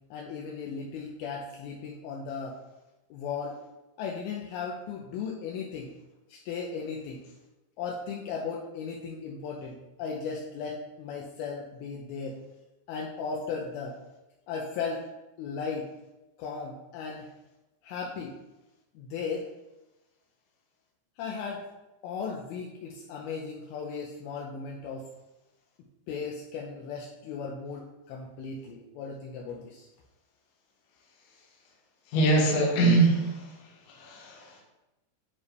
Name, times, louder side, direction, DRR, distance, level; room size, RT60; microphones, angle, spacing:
voice 1, 0.1-2.6 3.1-3.6 4.0-5.9 6.3-7.2 7.8-12.4 12.9-14.0 14.5-15.0 15.4-15.9 16.4-17.3 17.8-18.4 19.0-19.5 21.2-21.6 22.0-25.1 26.1-29.9, left 5 dB, 80° left, -2 dB, 2.4 m, -36 dB
voice 2, 32.1-33.3 34.0-34.4, right 2 dB, 65° left, -1 dB, 2.2 m, -22 dB
9.5 x 3.2 x 3.4 m, 1.0 s
omnidirectional pair, 4.6 m